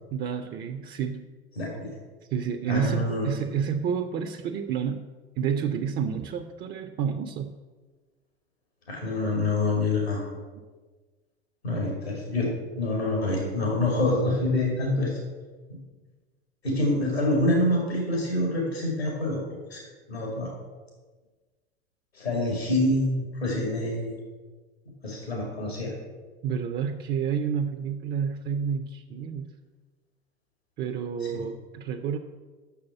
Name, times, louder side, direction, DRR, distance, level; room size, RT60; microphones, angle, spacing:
voice 1, 0.1-1.3 2.3-5.1 5.4-7.5 26.4-29.5 30.8-32.2, right 7 dB, 35° right, 6 dB, 0.5 m, -29 dB
voice 2, 1.6-1.9 2.7-3.3 8.9-10.3 11.6-15.1 16.6-19.4 19.7-19.8 20.1-20.5 22.1-24.1 25.0-25.9 31.2-31.4, left 1 dB, 85° left, -1 dB, 2.1 m, -26 dB
6.4 x 5.7 x 7.1 m, 1.4 s
figure-of-eight pair, 75°, 31 cm